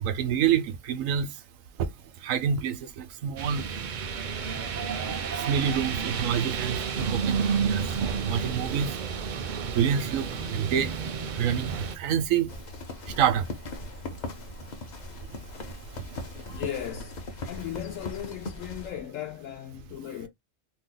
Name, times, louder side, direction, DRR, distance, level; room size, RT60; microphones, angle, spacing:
voice 1, 0.0-1.3 2.2-3.7 5.5-7.9 8.3-8.9 9.7-10.9 11.4-12.5 13.2-13.5, right 8 dB, 85° right, 1.0 m, -27 dB
sound 1, 3.4-12.0, right 6 dB, 55° right, 0.5 m, -31 dB
sound 2, 12.5-18.9, left 2 dB, 45° left, 0.6 m, -39 dB
voice 2, 16.5-20.3, left 11 dB, 80° left, 1.0 m, -37 dB
2.8 x 2.2 x 3.7 m
omnidirectional pair, 1.3 m